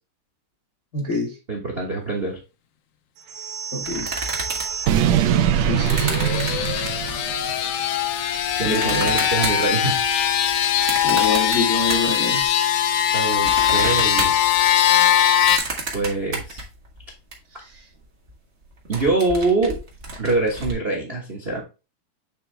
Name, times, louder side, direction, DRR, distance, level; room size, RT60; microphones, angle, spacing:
voice 1, 0.9-1.4 3.7-4.2 5.6-6.1 8.6-9.1 11.0-12.4 17.6-17.7, left 3 dB, 60° left, 0.7 m, -26 dB
voice 2, 1.5-2.4 8.6-10.0 13.1-14.3 15.9-16.6 18.9-19.8 20.2-21.6, right 3 dB, 55° right, 0.6 m, -24 dB
sound 1, 3.3-7.6, right 9 dB, 75° right, 1.7 m, -23 dB
sound 2, 3.8-7.3 7.9-12.5 12.8-17.3 17.7-17.8 18.0-18.3 18.6-20.7, right 2 dB, 40° right, 1.0 m, -32 dB
sound 3, 5.6-15.6, left 10 dB, 80° left, 2.2 m, -21 dB
8.1 x 3.6 x 3.3 m
omnidirectional pair, 3.6 m